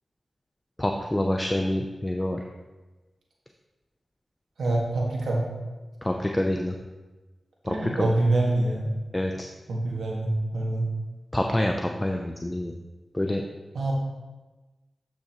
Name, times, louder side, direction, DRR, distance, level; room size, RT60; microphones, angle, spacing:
voice 1, 0.8-2.4 6.0-6.7 7.6-8.1 9.1-9.5 11.3-12.7 13.1-13.4, left 1 dB, 15° left, 2 dB, 0.6 m, -27 dB
voice 2, 4.6-5.5 7.7-8.9 9.7-10.9 13.7-13.9, right 2 dB, 85° right, -3 dB, 1.8 m, -25 dB
12.5 x 5.7 x 3.0 m, 1.2 s
cardioid pair, 65°, 0 cm